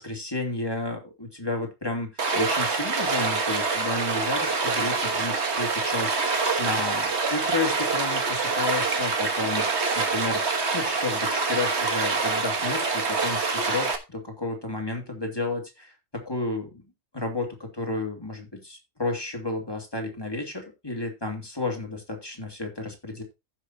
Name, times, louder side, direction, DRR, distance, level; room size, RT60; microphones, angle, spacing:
voice 1, 0.0-9.7 10.0-10.4 10.7-16.8 17.1-23.2, left 2 dB, 15° left, 2 dB, 2.5 m, -32 dB
Stream, 2.2-14.0, right 4 dB, 50° right, 1.6 m, -26 dB
15.0 x 6.2 x 2.8 m, 0.24 s
omnidirectional pair, 1.5 m